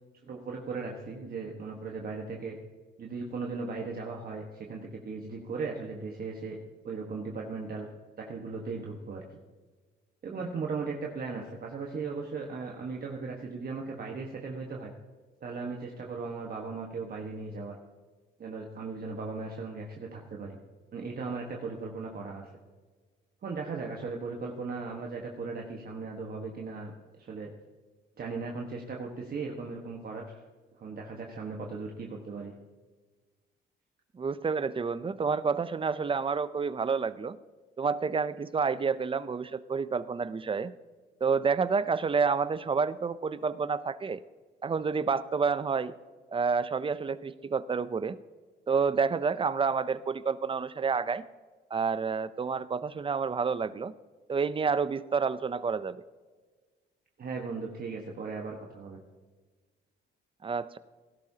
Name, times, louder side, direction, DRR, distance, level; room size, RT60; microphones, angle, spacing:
voice 1, 0.2-2.6 3.0-6.6 6.8-7.9 8.2-9.2 10.2-14.9 15.4-17.8 18.4-20.6 20.9-22.5 23.4-27.5 28.2-30.4 30.8-32.5 57.2-59.0, right 4 dB, 50° right, 0 dB, 1.5 m, -37 dB
voice 2, 34.1-37.4 37.8-40.7 41.2-44.2 44.6-45.9 46.3-48.2 48.7-51.2 51.7-53.9 54.3-56.0 60.4-60.8, right 5 dB, 25° right, 15 dB, 0.6 m, -29 dB
17.5 x 11.5 x 2.9 m, 1.4 s
cardioid pair, 90°, 20 cm